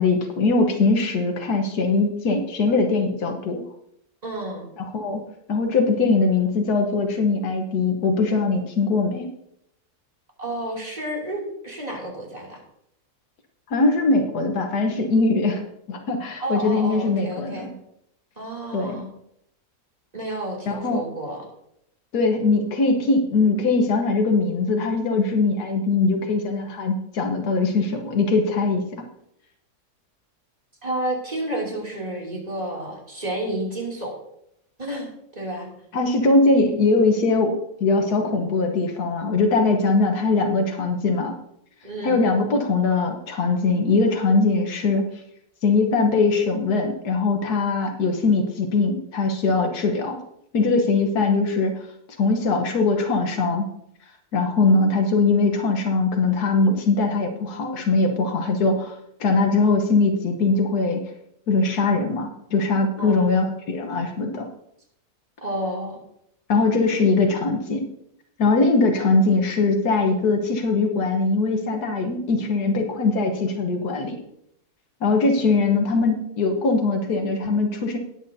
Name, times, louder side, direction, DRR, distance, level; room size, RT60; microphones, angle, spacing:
voice 1, 0.0-3.6 4.9-5.2 5.5-9.3 13.7-15.6 15.9-17.7 18.7-19.0 20.7-21.0 22.1-29.0 35.9-41.3 42.0-45.1 45.6-50.2 50.5-51.7 52.2-53.7 54.3-58.9 59.2-61.0 61.5-64.5 66.5-67.9 68.4-74.2 75.0-78.0, left 3 dB, 85° left, 4 dB, 1.7 m, -21 dB
voice 2, 4.2-4.7 10.4-12.6 16.4-17.7 18.4-19.1 20.1-21.4 30.8-34.2 34.8-35.7 41.8-42.2 63.0-63.4 65.4-66.0, right 1 dB, 25° right, -3 dB, 2.9 m, -30 dB
19.0 x 8.3 x 2.7 m, 0.76 s
omnidirectional pair, 1.6 m